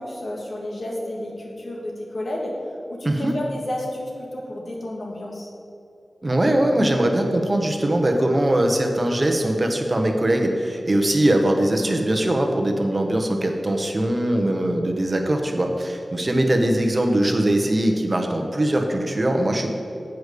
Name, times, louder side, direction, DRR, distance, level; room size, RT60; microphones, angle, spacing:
voice 1, 0.0-2.5 2.9-5.5, left 1 dB, 70° left, -2 dB, 1.7 m, -31 dB
voice 2, 6.2-19.7, right 1 dB, 35° right, 3 dB, 0.9 m, -21 dB
8.1 x 4.9 x 6.6 m, 2.7 s
wide cardioid pair, 90°, 0 cm